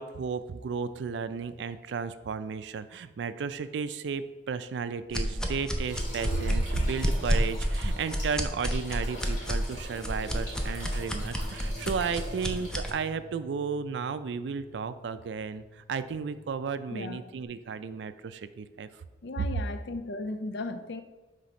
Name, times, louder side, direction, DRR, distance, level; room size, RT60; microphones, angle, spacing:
voice 1, 0.0-18.9 19.4-19.5, right 5 dB, 85° right, 12 dB, 0.4 m, -34 dB
sound 1, 5.1-12.9, equal, 5° left, 0.5 m, -30 dB
sound 2, 5.8-13.0, left 1 dB, 40° left, 1.9 m, -44 dB
Bass guitar, 11.2-17.5, left 1 dB, 60° left, 1.6 m, -51 dB
voice 2, 16.9-17.2 19.2-21.0, left 2 dB, 75° left, 9 dB, 0.5 m, -36 dB
5.7 x 3.4 x 5.0 m, 1.1 s
head